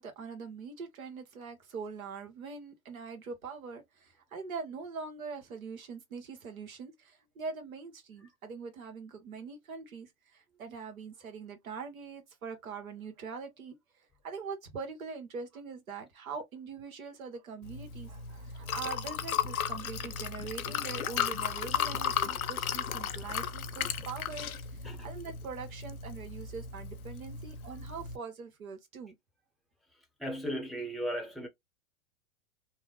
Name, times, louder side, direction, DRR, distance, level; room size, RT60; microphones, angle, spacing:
voice 1, 0.0-29.1, right 5 dB, 80° right, 1.1 m, -43 dB
Liquid, 17.6-28.2, left 7 dB, 90° left, 0.5 m, -35 dB
voice 2, 30.2-31.5, equal, ahead, 0.7 m, -36 dB
2.7 x 2.0 x 2.8 m
hypercardioid pair, 100°, 41 cm